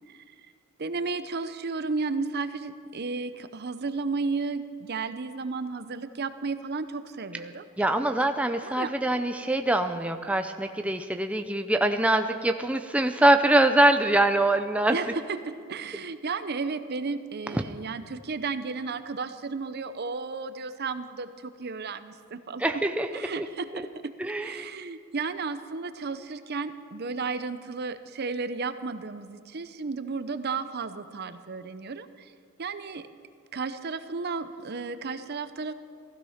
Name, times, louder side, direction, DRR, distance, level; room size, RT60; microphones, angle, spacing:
voice 1, 0.8-7.6 8.6-8.9 14.9-22.6 23.1-24.1 24.4-32.3 32.6-33.1 33.5-35.7, right 4 dB, 50° right, 12 dB, 0.7 m, -33 dB
voice 2, 7.8-15.0 17.5-17.6 22.6-23.1 23.4-23.5 23.7-23.9 24.2-24.7, right 1 dB, 5° right, 6 dB, 0.5 m, -24 dB
16.0 x 15.0 x 5.8 m, 2.3 s
head